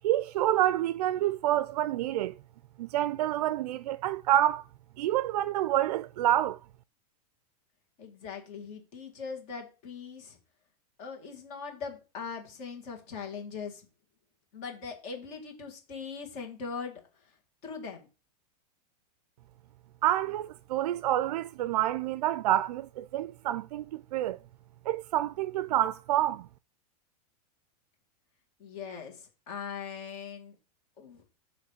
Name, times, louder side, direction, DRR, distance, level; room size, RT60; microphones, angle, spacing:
voice 1, 0.0-2.3 2.8-4.7 5.0-6.6 20.0-24.4 24.9-26.5, right 13 dB, 75° right, 0.4 m, -28 dB
voice 2, 8.0-10.4 11.0-13.9 14.5-17.0 17.6-18.1 28.6-30.5 31.0-31.2, left 5 dB, 35° left, 1.9 m, -40 dB
8.0 x 3.1 x 6.4 m
supercardioid pair, 175°, 20 cm